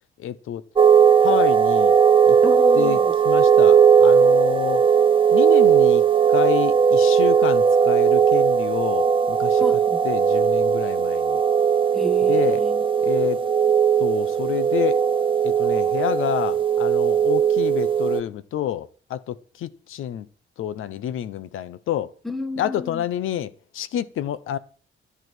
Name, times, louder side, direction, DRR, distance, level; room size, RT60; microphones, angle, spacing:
voice 1, 0.2-0.6 1.2-2.0 2.3-2.4 2.8-3.0 3.2-4.8 5.3-6.0 6.3-9.6 10.0-11.4 12.3-12.6 13.0-13.4 14.0-15.0 15.4-20.3 20.6-22.1 22.6-24.6, left 11 dB, 85° left, 0.8 m, -28 dB
sound 1, 0.8-18.2, right 7 dB, 25° right, 0.5 m, -18 dB
voice 2, 2.4-3.1 9.6-10.0 11.9-12.8 22.2-23.0, equal, ahead, 1.2 m, -30 dB
11.0 x 11.0 x 6.3 m
cardioid pair, 155°, 20 cm